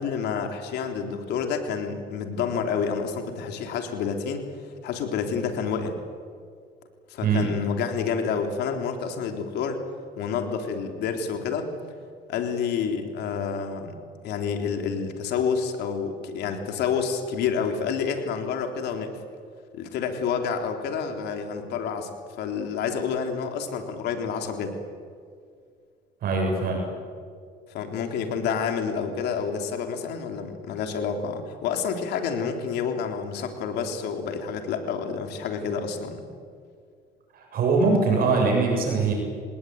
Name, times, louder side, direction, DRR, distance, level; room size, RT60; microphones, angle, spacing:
voice 1, 0.0-4.4 4.8-5.9 7.1-9.8 10.2-11.7 12.3-14.0 14.2-19.1 19.7-24.8 27.7-36.2, left 6 dB, 80° left, 5 dB, 3.5 m, -29 dB
voice 2, 7.2-7.6 26.2-26.9 37.3-39.1, right 4 dB, 60° right, 1 dB, 7.1 m, -22 dB
27.0 x 18.5 x 9.4 m, 2.1 s
cardioid pair, 110°, 17 cm